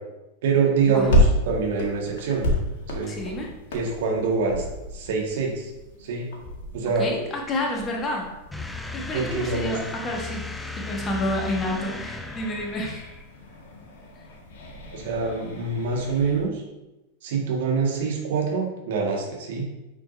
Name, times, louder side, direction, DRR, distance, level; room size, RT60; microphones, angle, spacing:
voice 1, 0.4-2.5 2.9-3.1 3.7-4.7 4.9-5.7 6.0-6.3 6.7-7.1 9.1-9.8 14.9-16.6 17.2-19.7, right 5 dB, 55° right, -1 dB, 2.0 m, -25 dB
sound 1, 0.8-16.5, left 1 dB, 50° left, 2.0 m, -31 dB
voice 2, 3.1-3.5 7.0-8.3 8.9-10.5 10.8-13.2, left 1 dB, 25° left, -1 dB, 1.7 m, -29 dB
sound 2, 8.5-13.2, left 3 dB, 5° left, 0.5 m, -36 dB
9.9 x 6.0 x 2.8 m, 0.99 s
figure-of-eight pair, 90°, 0 cm